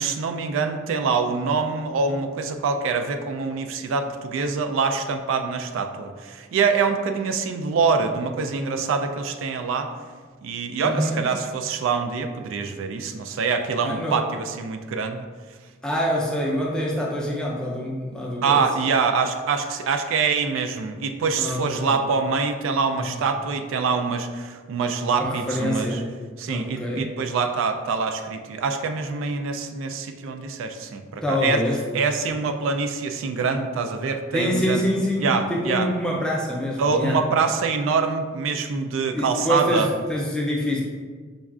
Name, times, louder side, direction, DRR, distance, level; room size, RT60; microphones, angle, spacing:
voice 1, 0.0-9.9 10.4-15.2 18.4-26.0 26.4-31.6 31.9-34.8 35.2-35.9 36.8-39.9, right 5 dB, 75° right, 6 dB, 0.3 m, -25 dB
voice 2, 10.8-11.3 13.8-14.2 15.8-18.7 21.4-22.0 22.9-23.0 25.1-26.1 26.5-27.1 31.2-31.8 34.3-37.2 39.1-40.8, equal, 5° left, -3 dB, 0.4 m, -26 dB
5.2 x 2.3 x 2.3 m, 1.5 s
head